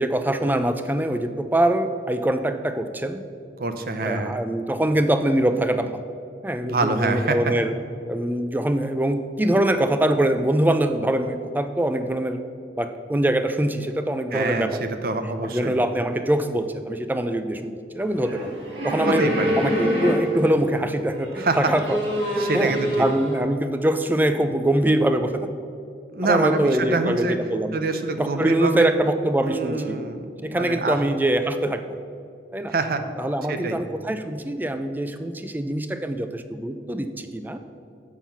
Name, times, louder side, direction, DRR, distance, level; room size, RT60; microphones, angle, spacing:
voice 1, 0.0-3.2 4.0-6.0 6.4-7.7 8.1-12.4 12.8-14.9 15.5-18.5 18.8-19.3 19.6-22.0 22.3-22.7 23.0-25.3 26.2-27.8 28.2-30.0 30.4-32.0 32.5-32.7 33.2-37.6, right 1 dB, 10° right, 8 dB, 0.4 m, -23 dB
voice 2, 3.6-4.4 6.6-7.4 14.3-15.7 19.0-19.5 21.4-21.7 22.4-23.1 26.1-27.4 27.7-28.9 29.5-31.0 32.7-33.0 33.5-33.8, right 3 dB, 55° right, 8 dB, 0.6 m, -25 dB
sound 1, 18.1-20.6 21.1-23.4, equal, 90° right, 2.2 m, -26 dB
7.2 x 6.0 x 5.7 m, 2.5 s
head